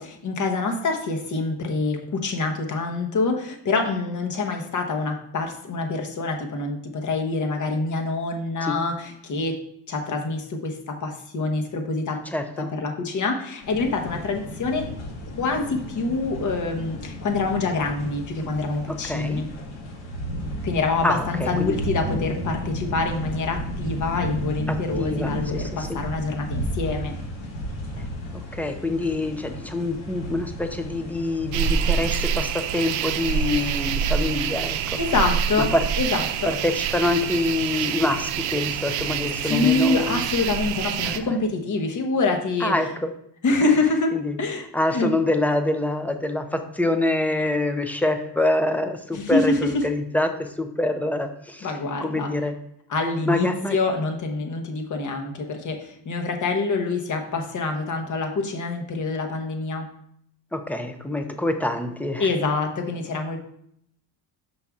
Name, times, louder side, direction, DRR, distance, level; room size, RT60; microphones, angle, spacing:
voice 1, 0.0-9.5 9.9-12.2 12.6-14.9 15.4-19.5 20.6-27.1 35.0-35.7 36.0-36.5 39.4-42.7 43.4-44.1 44.4-44.7 44.9-45.1 49.1-49.6 51.6-52.3 52.9-59.9 62.2-63.4, left 3 dB, 40° left, 3 dB, 1.2 m, -26 dB
voice 2, 12.3-12.7 18.9-19.4 21.0-21.8 25.0-25.9 28.3-34.8 35.6-35.8 36.4-40.2 41.0-41.2 42.6-43.1 44.1-44.3 44.7-51.7 52.0-52.5 53.3-53.8 60.5-62.3, left 2 dB, 5° left, 7 dB, 0.5 m, -25 dB
sound 1, 13.6-32.0, equal, 70° left, 2.1 m, -33 dB
sound 2, 31.5-41.2, right 8 dB, 70° right, 0.6 m, -26 dB
5.7 x 5.4 x 3.6 m, 0.70 s
cardioid pair, 100°, 45 cm